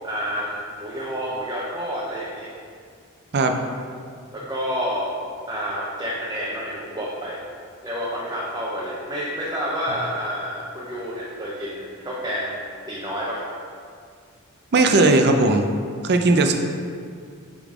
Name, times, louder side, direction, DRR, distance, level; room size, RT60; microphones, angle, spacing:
voice 1, 0.0-2.5 4.3-5.1 5.5-7.4 7.8-12.6 12.9-13.5, equal, 15° right, -5 dB, 0.7 m, -29 dB
voice 2, 14.7-15.6 16.0-16.5, right 2 dB, 50° right, 5 dB, 0.5 m, -17 dB
7.2 x 3.8 x 4.8 m, 2.2 s
head